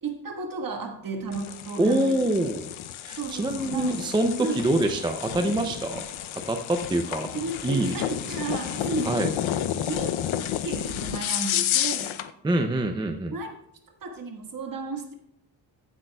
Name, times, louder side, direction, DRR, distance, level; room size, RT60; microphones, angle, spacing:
voice 1, 0.0-2.3 3.2-4.6 7.3-9.2 9.9-10.2 10.6-12.2 13.3-13.5 14.0-15.1, right 3 dB, 45° right, 2 dB, 1.5 m, -33 dB
sound 1, 1.3-12.3, left 11 dB, 90° left, 0.6 m, -31 dB
voice 2, 1.8-2.7 3.1-6.1 6.5-7.3 7.6-8.0 9.0-9.3 12.4-13.3, right 1 dB, 10° right, 5 dB, 0.4 m, -25 dB
15.0 x 8.1 x 2.2 m, 0.77 s
wide cardioid pair, 165°, 47 cm